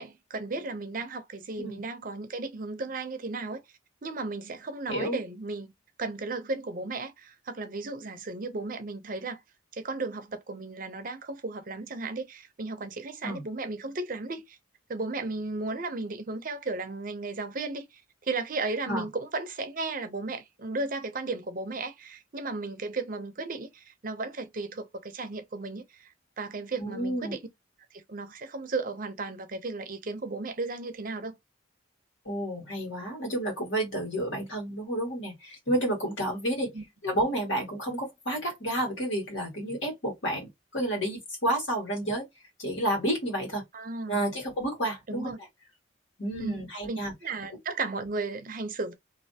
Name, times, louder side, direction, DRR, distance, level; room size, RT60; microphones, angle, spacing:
voice 1, 0.0-3.6 4.0-5.7 6.0-9.4 9.7-14.6 14.9-27.4 27.9-31.3 36.7-36.8 43.7-44.3 45.1-45.4 46.4-48.9, right 3 dB, 45° right, 0.6 m, -35 dB
voice 2, 4.9-5.2 13.2-13.4 18.9-19.1 26.8-27.3 32.3-36.7 37.0-42.3 42.6-43.6 44.1-45.3 46.2-47.1, right 1 dB, 70° left, 2.1 m, -30 dB
3.2 x 2.6 x 2.8 m
head